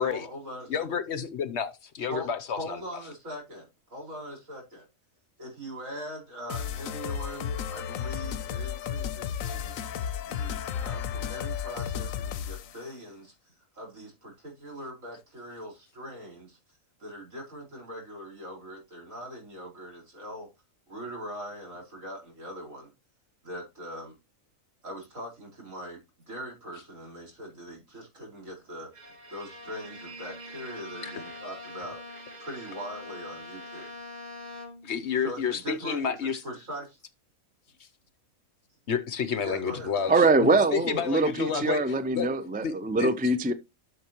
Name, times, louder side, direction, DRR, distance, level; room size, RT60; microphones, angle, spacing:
voice 1, 0.0-0.8 2.1-2.3 2.6-4.8 5.4-9.7 10.2-13.3 13.7-16.6 17.0-20.5 20.9-22.9 23.4-24.1 24.8-26.0 26.3-28.9 29.3-32.0 32.4-33.9 35.2-36.2 36.4-37.0 39.4-39.9, equal, 75° right, 5.1 m, -41 dB
voice 2, 0.7-2.8 31.0-31.2 34.8-36.4 37.8-37.9 38.9-40.1 40.4-41.8 42.2-42.3 42.6-42.7 43.0-43.1, left 7 dB, 60° left, 1.0 m, -30 dB
sound 1, 6.5-12.8, left 8 dB, 80° left, 1.1 m, -33 dB
Bowed string instrument, 28.9-35.0, left 1 dB, 35° right, 1.4 m, -43 dB
voice 3, 40.1-43.5, right 2 dB, 15° right, 0.3 m, -23 dB
12.0 x 6.7 x 3.0 m
omnidirectional pair, 1.4 m